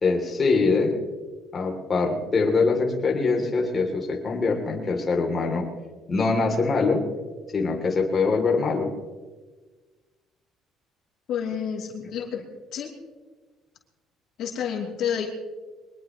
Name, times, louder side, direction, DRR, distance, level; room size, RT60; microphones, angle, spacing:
voice 1, 0.0-0.9 1.5-5.6 6.1-7.0 7.5-8.9, left 4 dB, 30° left, 1 dB, 2.7 m, -23 dB
voice 2, 11.3-12.4 12.7-12.9 14.4-15.3, left 8 dB, 65° left, 0 dB, 2.8 m, -29 dB
23.0 x 20.0 x 3.0 m, 1.3 s
cardioid pair, 115°, 0 cm